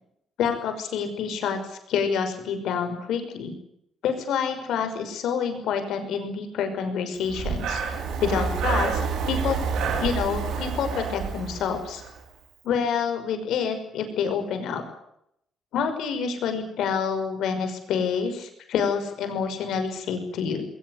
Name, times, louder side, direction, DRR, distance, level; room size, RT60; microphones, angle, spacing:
voice 1, 0.4-3.5 4.0-7.8 8.2-9.6 10.0-12.0 12.6-14.8 15.7-20.6, left 6 dB, 80° left, 7 dB, 5.9 m, -27 dB
Breathing, 7.3-12.2, right 5 dB, 80° right, 5.1 m, -28 dB
21.5 x 19.5 x 9.9 m, 0.75 s
cardioid pair, 90°, 0 cm